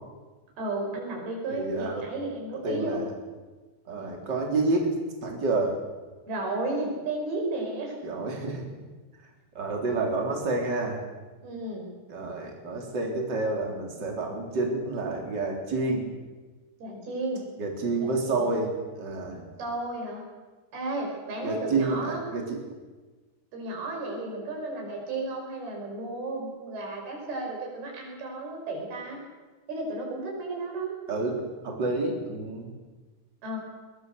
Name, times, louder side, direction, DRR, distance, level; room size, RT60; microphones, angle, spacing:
voice 1, 0.6-3.0 6.3-8.0 11.4-11.9 16.8-17.4 18.0-18.6 19.6-20.3 20.7-22.2 23.5-29.2 29.7-31.0 33.4-33.6, right 2 dB, 65° right, 0 dB, 7.6 m, -33 dB
voice 2, 1.6-2.0 2.6-3.1 3.9-4.9 5.2-5.8 8.0-8.7 9.5-11.0 12.1-16.1 17.6-19.4 21.4-22.6 31.1-31.4 31.6-32.7, right 3 dB, 25° right, 1 dB, 3.9 m, -29 dB
22.0 x 21.5 x 6.8 m, 1.3 s
omnidirectional pair, 4.8 m